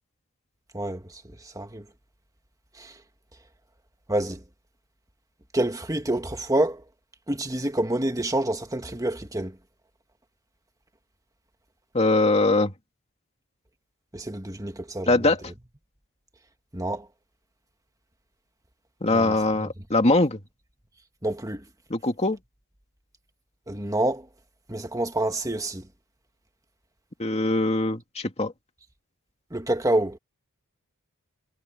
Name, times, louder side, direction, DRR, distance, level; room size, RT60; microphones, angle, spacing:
voice 1, 0.7-1.9 2.8-3.0 4.1-4.4 5.5-6.8 7.3-9.6 14.1-15.3 16.7-17.1 19.1-19.7 21.2-21.7 23.7-24.3 24.7-25.9 29.5-30.2, right 1 dB, 15° right, 1.8 m, -28 dB
voice 2, 11.9-12.7 15.1-15.4 19.0-20.4 21.9-22.4 27.2-28.5, left 2 dB, 30° left, 2.4 m, -22 dB
head